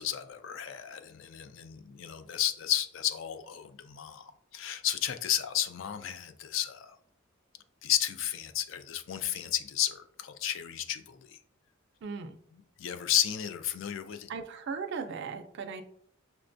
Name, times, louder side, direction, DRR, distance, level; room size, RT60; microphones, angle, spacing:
voice 1, 0.0-7.0 7.8-11.4 12.8-14.3, left 11 dB, 65° left, 9 dB, 0.4 m, -33 dB
voice 2, 12.0-12.4 14.3-15.8, right 5 dB, 60° right, 7 dB, 0.4 m, -37 dB
5.8 x 2.2 x 2.5 m, 0.64 s
head